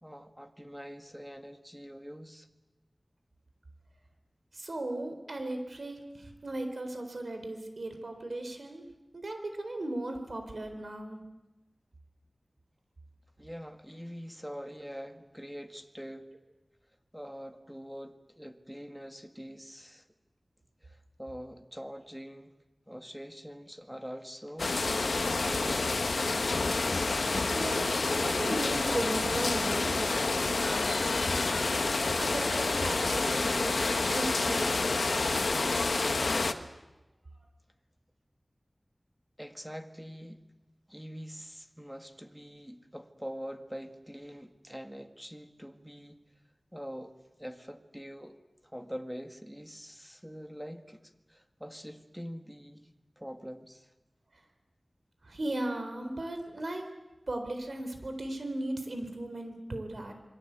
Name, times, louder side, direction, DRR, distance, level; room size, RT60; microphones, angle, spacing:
voice 1, 0.0-2.5 13.4-16.3 17.1-20.1 20.8-22.5 22.9-26.1 39.4-40.4 40.9-46.3 46.7-47.1 47.4-48.4 48.6-52.9 53.2-53.9, equal, 5° right, 7 dB, 2.0 m, -44 dB
voice 2, 4.5-8.9 9.1-11.2 27.5-31.4 31.8-34.9 55.2-56.9 57.3-60.1, right 1 dB, 70° right, 6 dB, 4.1 m, -37 dB
sound 1, 24.6-36.5, left 3 dB, 85° left, 1.3 m, -28 dB
27.5 x 22.0 x 8.3 m, 1.0 s
wide cardioid pair, 60°, 0 cm